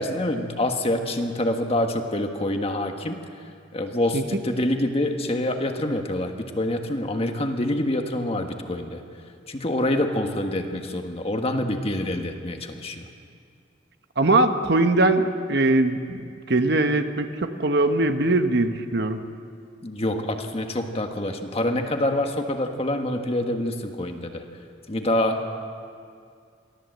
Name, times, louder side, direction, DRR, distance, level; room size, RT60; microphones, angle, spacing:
voice 1, 0.0-3.2 3.7-9.0 9.5-13.1 19.8-24.4 24.9-25.6, left 1 dB, 35° left, 5 dB, 1.5 m, -26 dB
voice 2, 14.2-19.2, right 2 dB, 60° right, 7 dB, 1.1 m, -21 dB
23.5 x 15.5 x 7.8 m, 2.3 s
head